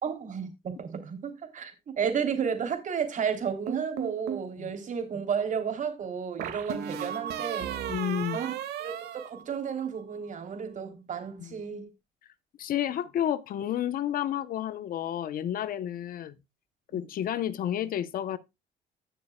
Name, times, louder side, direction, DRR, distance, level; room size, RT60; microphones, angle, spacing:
voice 1, 0.0-7.8 8.3-9.0 9.2-11.9 16.9-17.0, right 7 dB, 50° right, 3.3 m, -32 dB
sound 1, 3.7-4.5 6.4-10.0, right 9 dB, 75° right, 2.1 m, -35 dB
voice 2, 7.9-8.4 11.4-11.6 12.6-16.4 16.9-18.4, left 10 dB, 60° left, 0.9 m, -31 dB
15.5 x 6.6 x 2.3 m
cardioid pair, 110°, 17 cm